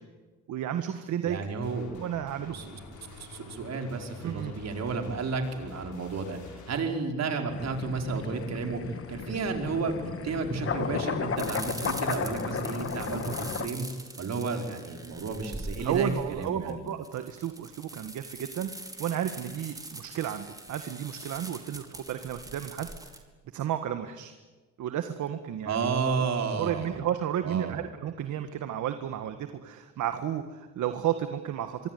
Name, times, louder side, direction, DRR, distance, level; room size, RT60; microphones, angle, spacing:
voice 1, 0.5-1.4 2.0-2.5 3.1-3.2 4.2-4.5 15.8-22.9 23.5-24.3 24.8-25.8 26.6-31.8, right 10 dB, 75° right, 9 dB, 1.7 m, -32 dB
voice 2, 1.2-1.9 2.5-2.8 3.2-8.8 9.1-13.9 14.2-16.8 25.6-27.0 27.4-27.8, right 4 dB, 60° right, 4 dB, 5.1 m, -32 dB
sound 1, 1.6-6.8, left 4 dB, 75° left, 6.7 m, -48 dB
sound 2, 7.5-13.7, left 6 dB, 50° left, 2.1 m, -34 dB
sound 3, 11.4-23.2, right 1 dB, 10° right, 3.8 m, -43 dB
25.5 x 23.5 x 9.5 m, 1.3 s
cardioid pair, 90°, 30 cm